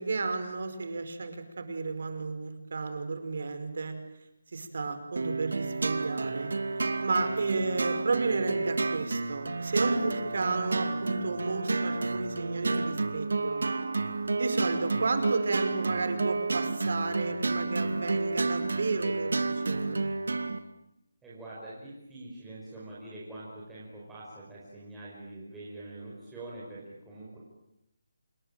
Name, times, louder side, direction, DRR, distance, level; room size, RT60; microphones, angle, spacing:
voice 1, 0.0-3.9 4.5-6.5 7.0-13.6 14.4-20.1, right 3 dB, 55° right, 9 dB, 5.0 m, -32 dB
sound 1, 5.2-20.6, right 3 dB, 85° right, 2.6 m, -30 dB
voice 2, 21.2-27.4, right 2 dB, 5° right, -8 dB, 5.5 m, -44 dB
27.5 x 22.5 x 9.0 m, 0.83 s
hypercardioid pair, 175°, 0 cm